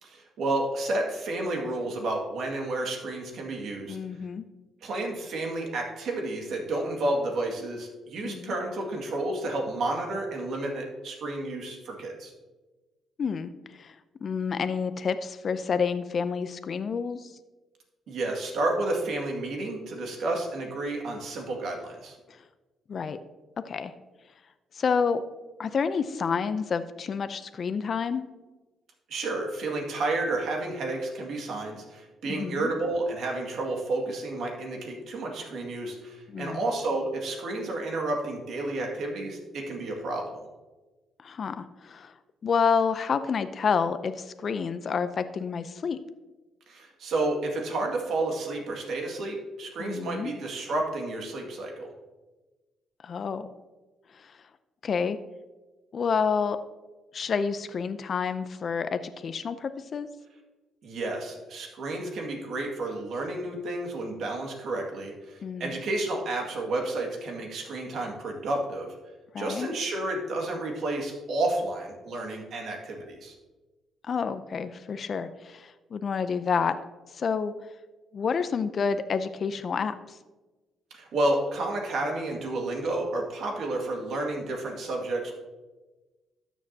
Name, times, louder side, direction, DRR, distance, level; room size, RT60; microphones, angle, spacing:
voice 1, 0.0-4.0 4.8-12.3 18.1-22.2 29.1-40.4 46.7-51.9 60.8-68.9 69.4-73.3 80.9-85.4, right 2 dB, 70° right, 1 dB, 2.0 m, -31 dB
voice 2, 3.9-4.4 8.2-8.6 13.2-14.0 14.2-17.3 22.3-22.4 22.9-23.2 23.6-23.9 24.7-25.2 25.6-28.2 32.3-32.7 36.3-36.6 41.2-42.1 42.4-46.0 49.8-50.3 53.0-53.5 54.1-54.4 54.8-55.2 55.9-56.6 57.1-60.1 65.4-65.8 69.3-69.7 74.1-76.8 77.1-77.5 78.1-80.2, left 6 dB, 50° left, 11 dB, 0.5 m, -29 dB
12.5 x 7.3 x 2.8 m, 1.2 s
cardioid pair, 90°, 0 cm